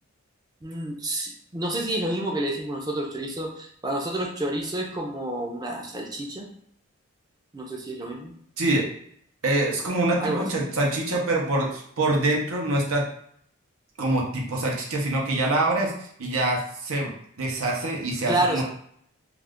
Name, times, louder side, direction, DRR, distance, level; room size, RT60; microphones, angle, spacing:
voice 1, 0.6-6.5 7.5-8.3 10.2-10.5 18.3-18.6, right 1 dB, 20° right, 0 dB, 0.4 m, -29 dB
voice 2, 9.4-13.1 14.0-17.1 17.4-18.6, right 2 dB, 90° right, -1 dB, 0.8 m, -25 dB
2.4 x 2.4 x 3.5 m, 0.65 s
head